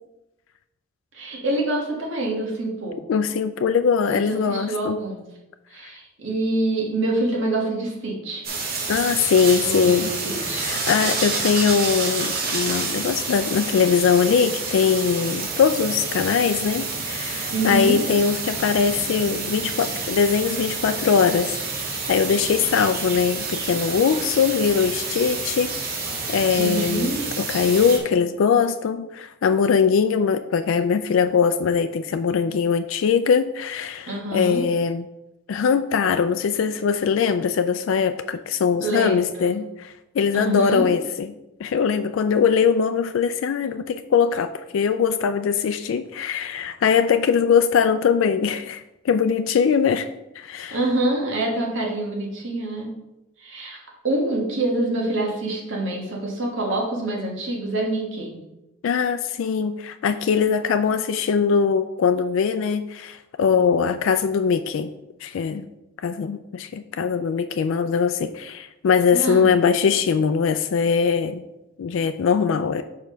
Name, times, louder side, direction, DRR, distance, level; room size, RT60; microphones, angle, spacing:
voice 1, 1.1-3.0 4.1-5.2 5.7-8.5 9.5-10.7 17.5-18.0 26.5-27.2 34.1-34.7 38.8-39.6 40.3-40.9 50.7-52.9 53.4-58.4 69.1-69.6, right 2 dB, 70° right, -1 dB, 1.5 m, -26 dB
voice 2, 3.1-5.0 8.9-10.1 10.6-21.6 22.1-35.1 35.5-41.3 41.6-50.1 50.4-50.8 58.8-64.9 65.2-65.7 66.0-71.4 71.8-72.8, left 6 dB, 80° left, 9 dB, 0.3 m, -21 dB
sound 1, 8.4-28.0, right 4 dB, 50° right, 1.2 m, -29 dB
5.1 x 4.6 x 5.6 m, 0.94 s
head